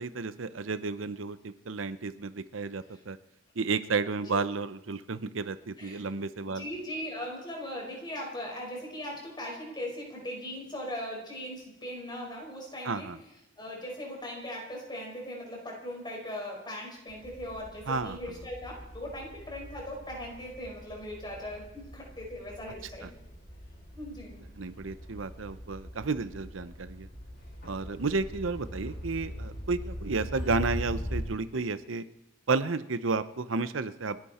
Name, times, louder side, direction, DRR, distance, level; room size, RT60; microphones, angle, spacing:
voice 1, 0.0-3.2 3.6-6.6 12.8-13.2 17.9-18.2 23.0-23.1 24.6-27.1 27.6-32.0 32.5-34.2, right 4 dB, 85° right, 13 dB, 0.8 m, -32 dB
voice 2, 6.5-13.1 13.6-23.1 23.9-24.4, left 1 dB, 25° left, -1 dB, 5.2 m, -39 dB
sound 1, 17.1-31.2, equal, 50° left, 5.0 m, -41 dB
29.5 x 10.5 x 4.3 m, 0.90 s
head